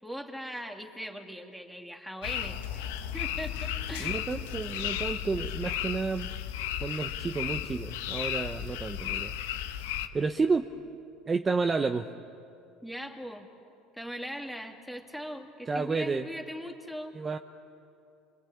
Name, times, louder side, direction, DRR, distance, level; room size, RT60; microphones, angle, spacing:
voice 1, 0.0-2.9 3.1-4.2 12.8-13.5 13.9-17.2, equal, ahead, 3 dB, 2.6 m, -40 dB
sound 1, 2.2-10.1, left 10 dB, 85° left, 1.2 m, -34 dB
voice 2, 4.0-6.3 6.8-9.3 10.1-10.7 11.3-12.1 15.7-16.3 17.1-17.4, right 4 dB, 25° right, 6 dB, 0.9 m, -30 dB
28.0 x 23.5 x 8.6 m, 2.7 s
supercardioid pair, 100°, 0 cm